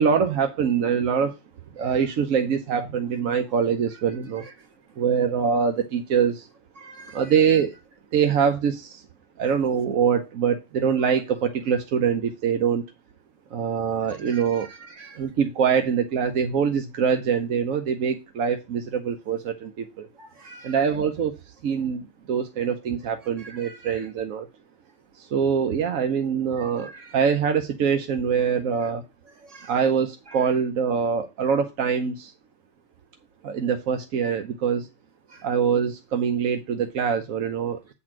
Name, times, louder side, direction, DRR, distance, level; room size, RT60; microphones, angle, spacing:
voice 1, 0.0-1.3 1.7-4.4 5.0-6.5 7.1-7.7 8.1-9.0 9.4-12.8 13.5-14.8 15.1-20.1 20.6-24.5 25.1-29.0 29.7-32.3 33.4-34.9 35.4-37.9, right 7 dB, 90° right, 1.2 m, -24 dB
voice 2, 6.8-7.2 14.2-15.2 20.2-20.8 23.4-24.0 26.5-27.2 29.4-29.8 35.3-35.5, right 3 dB, 65° right, 2.0 m, -45 dB
8.7 x 4.2 x 5.9 m
omnidirectional pair, 1.4 m